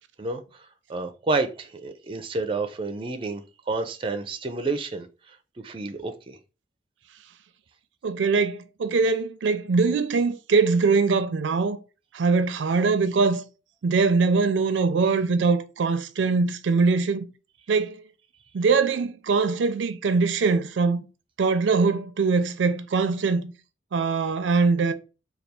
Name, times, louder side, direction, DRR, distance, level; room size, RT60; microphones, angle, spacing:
voice 1, 0.9-5.1 5.6-6.4, right 3 dB, 30° right, 0.4 m, -29 dB
voice 2, 8.0-11.8 12.1-13.4 13.8-17.3 17.7-18.0 18.5-21.0 21.4-23.5 23.9-24.9, right 4 dB, 90° right, 0.4 m, -22 dB
3.4 x 2.3 x 4.2 m
head